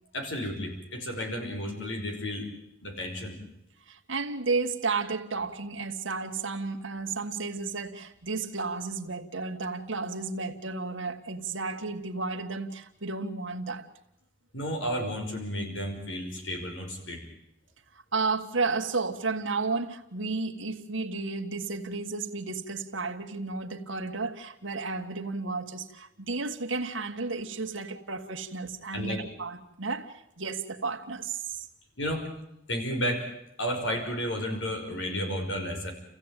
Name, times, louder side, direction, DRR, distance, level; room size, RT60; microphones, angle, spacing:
voice 1, 0.1-2.5 2.8-3.4 14.5-17.2 28.9-29.2 32.0-32.3 32.7-33.3 33.6-35.9, equal, 75° left, 5.6 m, -32 dB
voice 2, 3.9-13.9 18.1-31.6, right 4 dB, 80° right, 1.8 m, -32 dB
29.5 x 15.5 x 9.1 m
head